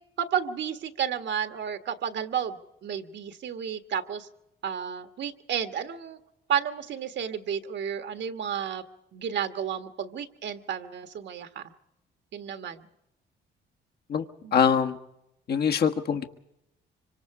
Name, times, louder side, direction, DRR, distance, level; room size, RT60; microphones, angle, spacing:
voice 1, 0.2-4.3 4.6-6.2 6.5-8.8 9.1-11.6 12.3-12.9 14.4-14.6, right 8 dB, 65° right, 8 dB, 1.6 m, -32 dB
voice 2, 14.5-15.0 15.5-16.2, left 7 dB, 55° left, 5 dB, 1.5 m, -23 dB
25.0 x 25.0 x 4.9 m, 0.84 s
cardioid pair, 90°, 20 cm